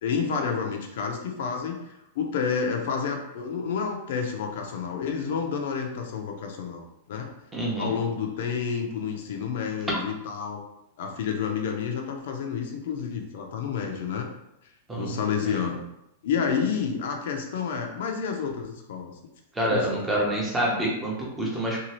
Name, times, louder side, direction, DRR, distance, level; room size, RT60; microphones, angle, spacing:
voice 1, 0.0-1.8 2.2-7.3 7.8-10.6 11.0-14.3 15.0-15.8 16.2-19.1 19.7-20.2, left 6 dB, 65° left, 2 dB, 0.5 m, -29 dB
voice 2, 7.5-7.9 14.9-15.2 19.6-21.8, right 1 dB, 10° right, -3 dB, 0.7 m, -27 dB
2.7 x 2.4 x 3.0 m, 0.83 s
supercardioid pair, 155°, 0 cm